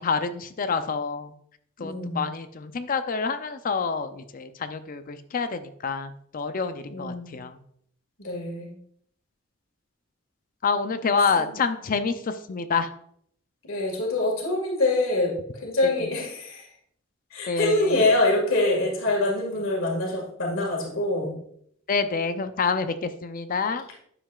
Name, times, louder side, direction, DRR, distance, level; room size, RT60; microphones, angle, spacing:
voice 1, 0.0-1.3 1.8-7.6 10.6-12.9 17.5-18.0 21.9-23.8, left 5 dB, 45° left, 10 dB, 0.5 m, -27 dB
voice 2, 1.8-2.2 6.9-7.3 8.2-8.7 11.4-11.5 13.6-16.7 17.3-21.3, left 2 dB, 85° left, 0 dB, 1.9 m, -25 dB
10.0 x 6.9 x 2.4 m, 0.67 s
head